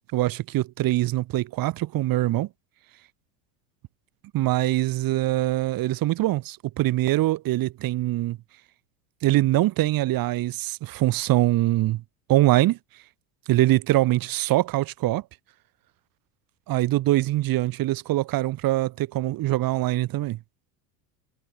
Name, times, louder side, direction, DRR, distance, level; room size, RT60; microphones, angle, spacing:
voice 1, 0.1-2.5 4.3-8.4 9.2-12.0 12.3-12.8 13.5-15.2 16.7-20.4, right 16 dB, 45° right, 1.2 m, -23 dB
hypercardioid pair, 90°, 49 cm